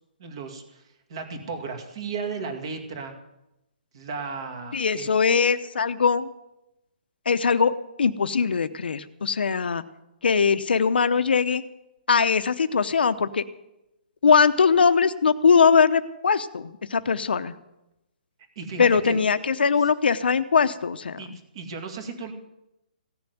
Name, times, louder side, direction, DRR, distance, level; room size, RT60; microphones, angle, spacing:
voice 1, 0.2-0.8 1.1-3.1 3.9-5.1 18.6-19.2 21.2-22.3, right 5 dB, 35° right, 5 dB, 2.1 m, -34 dB
voice 2, 4.7-6.3 7.3-7.7 8.0-9.8 10.2-11.6 12.1-13.4 14.2-17.5 18.8-21.2, left 6 dB, 90° left, 12 dB, 0.8 m, -21 dB
16.5 x 7.0 x 9.3 m, 0.91 s
hypercardioid pair, 175°, 5 cm